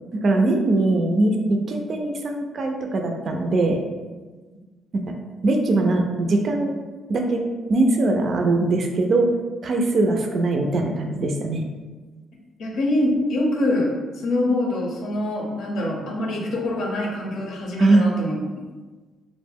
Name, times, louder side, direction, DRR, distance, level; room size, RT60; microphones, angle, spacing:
voice 1, 0.1-3.8 4.9-5.0 5.4-6.7 7.1-9.3 9.6-11.7 17.8-18.1, right 2 dB, 50° right, 3 dB, 0.3 m, -21 dB
voice 2, 12.6-18.4, left 1 dB, 75° left, -1 dB, 0.6 m, -24 dB
2.5 x 2.1 x 3.4 m, 1.3 s
cardioid pair, 90°, 0 cm